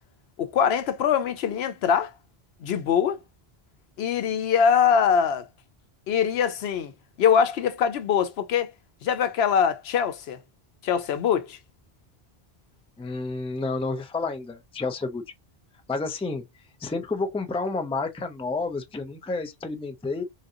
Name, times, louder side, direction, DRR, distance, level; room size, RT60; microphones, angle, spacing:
voice 1, 0.4-2.1 2.6-3.2 4.0-5.5 6.1-6.9 7.2-8.7 9.0-10.4 10.8-11.6, left 7 dB, 85° left, 0.9 m, -23 dB
voice 2, 13.0-15.2 15.9-16.5 16.8-20.2, left 3 dB, 10° left, 0.4 m, -30 dB
3.8 x 2.7 x 2.4 m
omnidirectional pair, 1.0 m